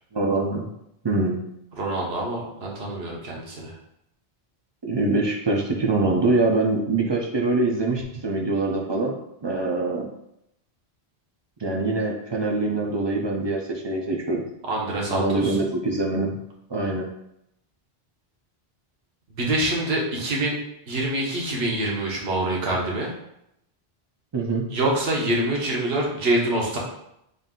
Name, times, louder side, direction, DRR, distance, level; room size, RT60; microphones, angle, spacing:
voice 1, 0.1-0.7 1.0-1.4 4.8-10.1 11.6-14.4 15.1-16.4 16.7-17.1 24.3-24.7, right 2 dB, 35° right, -1 dB, 0.4 m, -24 dB
voice 2, 1.8-3.7 14.7-15.6 19.4-20.6 20.9-23.1 24.7-26.8, right 1 dB, 75° right, -3 dB, 1.2 m, -25 dB
3.9 x 2.5 x 3.7 m, 0.80 s
omnidirectional pair, 1.1 m